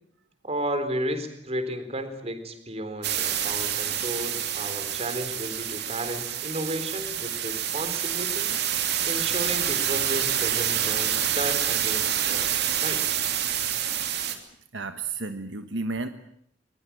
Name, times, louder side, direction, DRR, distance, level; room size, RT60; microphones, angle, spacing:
voice 1, 0.4-8.5 9.0-13.0, right 1 dB, 35° right, 9 dB, 4.1 m, -33 dB
sound 1, 3.0-14.3, right 10 dB, 60° right, 3.0 m, -27 dB
voice 2, 14.7-16.1, right 3 dB, 75° right, 8 dB, 1.5 m, -32 dB
22.0 x 21.5 x 8.8 m, 0.72 s
head